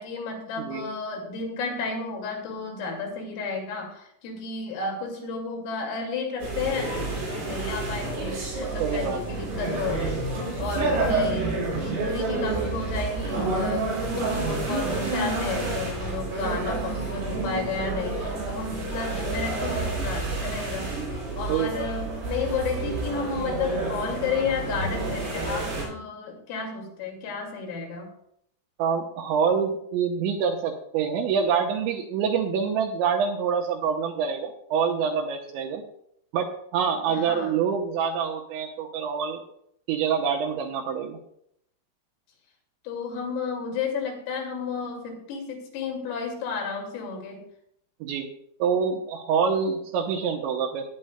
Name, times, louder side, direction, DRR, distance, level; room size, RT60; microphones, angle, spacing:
voice 1, 0.0-28.1 37.1-37.6 42.8-47.4, left 4 dB, 80° left, 1 dB, 4.8 m, -32 dB
sound 1, 6.4-25.8, right 3 dB, 55° right, 6.5 m, -29 dB
voice 2, 8.8-9.2 10.8-10.9 21.5-21.8 28.8-35.8 36.3-36.5 36.7-39.4 39.9-41.2 48.0-48.3 48.6-50.8, right 6 dB, 80° right, 2 dB, 2.8 m, -26 dB
17.5 x 9.9 x 2.2 m, 0.72 s
omnidirectional pair, 5.9 m